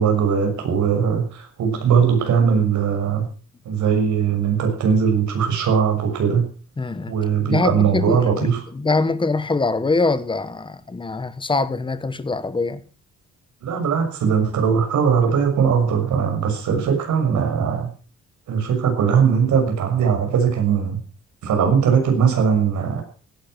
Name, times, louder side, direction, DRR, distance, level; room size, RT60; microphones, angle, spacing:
voice 1, 0.0-3.3 3.6-6.4 7.1-8.6 13.6-17.9 18.5-21.0 21.4-23.0, right 7 dB, 80° right, 6.3 m, -20 dB
voice 2, 6.8-7.1 7.4-12.8, left 3 dB, 15° left, 1.1 m, -23 dB
17.0 x 11.0 x 6.0 m
wide cardioid pair, 165°, 29 cm